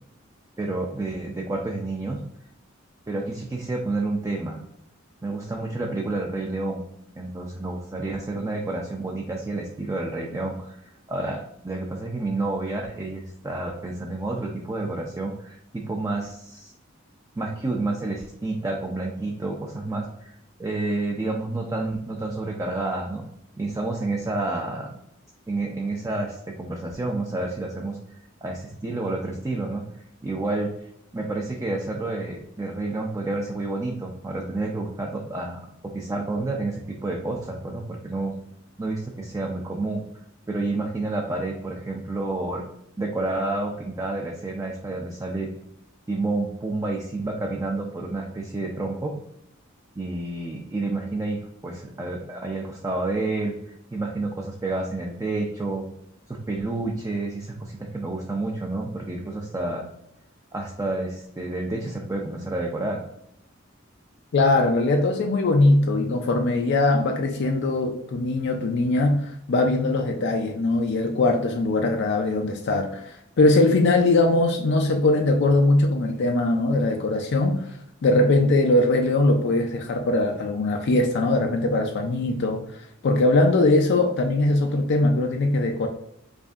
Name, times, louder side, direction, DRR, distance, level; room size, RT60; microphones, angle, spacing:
voice 1, 0.6-2.2 3.1-4.6 5.2-6.8 7.2-16.7 17.4-23.3 23.6-24.9 25.5-28.0 28.4-29.8 30.2-30.7 31.1-35.6 35.9-38.3 38.8-40.0 40.5-42.6 43.0-45.5 46.1-49.1 50.0-55.9 56.3-59.8 60.5-63.0, right 2 dB, 15° right, 0 dB, 0.4 m, -29 dB
voice 2, 64.3-77.7 78.0-82.6 83.0-85.9, left 2 dB, 60° left, 3 dB, 0.4 m, -21 dB
4.9 x 2.6 x 2.4 m, 0.76 s
head